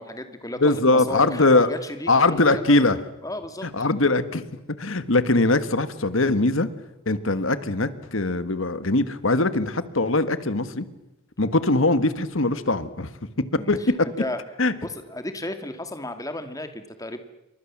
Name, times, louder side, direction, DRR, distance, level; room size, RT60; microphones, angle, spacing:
voice 1, 0.0-2.9 3.2-3.7 13.5-13.9 14.2-14.4 14.8-17.2, left 1 dB, 15° left, 8 dB, 2.2 m, -34 dB
voice 2, 0.6-1.7 2.1-3.0 3.6-4.4 4.8-6.7 7.1-10.8 11.4-13.1 13.7-14.1 14.6-14.7, left 2 dB, 65° left, 13 dB, 1.6 m, -21 dB
29.0 x 24.5 x 7.4 m, 0.96 s
head